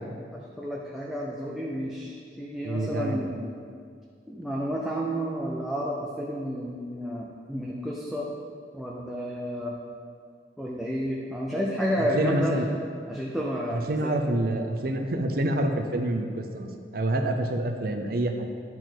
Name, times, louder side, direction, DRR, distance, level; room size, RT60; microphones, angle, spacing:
voice 1, 0.3-3.3 4.3-8.3 8.7-9.7 10.6-12.6 13.1-14.1, equal, ahead, -4 dB, 0.5 m, -31 dB
voice 2, 2.6-3.2 12.1-12.6 13.7-18.4, right 1 dB, 55° right, 5 dB, 0.6 m, -27 dB
10.5 x 5.0 x 3.8 m, 2.2 s
head